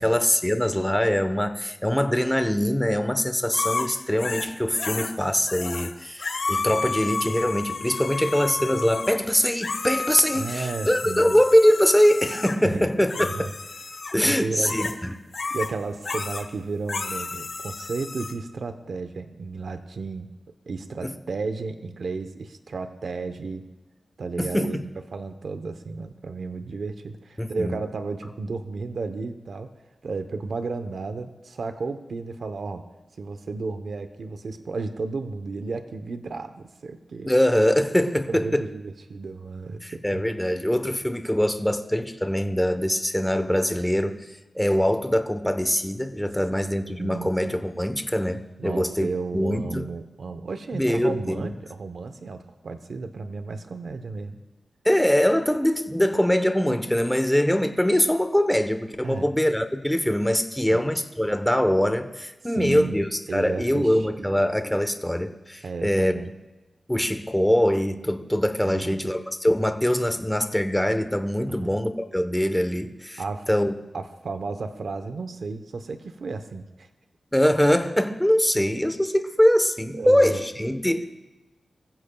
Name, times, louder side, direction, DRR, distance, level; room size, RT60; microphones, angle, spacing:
voice 1, 0.0-13.3 14.1-14.9 21.0-21.1 24.4-24.8 27.4-27.8 37.2-38.7 39.8-44.3 44.5-49.1 49.3-49.8 50.7-51.5 54.8-66.2 66.9-73.2 73.5-73.7 77.3-81.0, equal, 5° left, 8 dB, 1.1 m, -23 dB
sound 1, 3.5-5.1 5.5-5.9 6.2-12.6 13.1-14.2 14.6-15.0 15.3-15.7 16.0-16.5 16.9-18.3, left 4 dB, 60° left, 1.4 m, -31 dB
voice 2, 10.3-11.4 12.6-12.9 13.2-13.5 13.9-14.9 15.5-20.3 20.7-23.7 24.2-24.8 25.1-29.7 30.0-32.9 33.2-37.3 38.3-40.2 46.5-47.3 48.6-54.4 59.0-59.3 60.6-60.8 62.5-63.0 63.3-64.4 65.6-66.3 68.6-69.0 71.5-71.8 73.2-73.5 73.9-76.9 79.9-80.5, right 4 dB, 70° right, 8 dB, 0.9 m, -33 dB
25.0 x 15.0 x 2.3 m, 1.1 s
wide cardioid pair, 95°, 0 cm